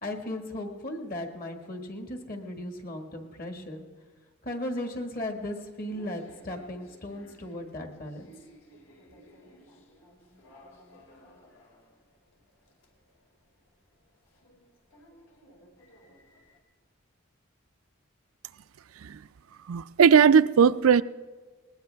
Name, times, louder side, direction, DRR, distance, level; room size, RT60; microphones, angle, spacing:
voice 1, 0.0-3.8 4.4-8.3, left 1 dB, 45° left, 1.7 m, -36 dB
sound 1, 4.9-16.6, equal, 70° left, 2.8 m, -57 dB
voice 2, 19.7-21.0, right 7 dB, 85° right, 0.4 m, -19 dB
19.5 x 19.5 x 3.4 m
head